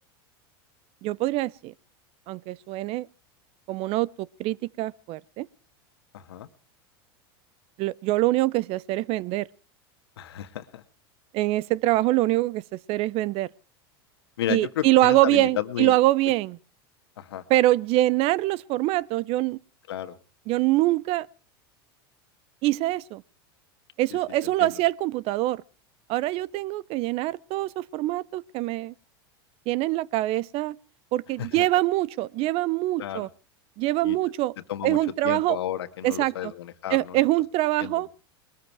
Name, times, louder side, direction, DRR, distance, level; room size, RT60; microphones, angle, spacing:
voice 1, 1.0-1.7 2.3-3.1 3.7-5.5 7.8-9.5 11.3-13.5 14.5-16.6 17.5-19.6 20.5-21.3 22.6-23.2 24.0-25.6 26.1-28.9 29.7-30.8 31.1-33.3 33.8-34.5 34.8-35.6 36.0-36.5 36.9-38.1, right 17 dB, 50° right, 0.7 m, -24 dB
voice 2, 6.1-6.5 10.2-10.8 14.4-15.9 17.2-17.5 19.9-20.2 24.1-24.2 24.4-24.7 31.4-31.7 33.0-33.3 34.0-34.2 34.7-35.0 35.2-37.3 37.8-38.0, left 12 dB, 85° left, 1.7 m, -33 dB
21.0 x 13.5 x 4.7 m
supercardioid pair, 115°, 13 cm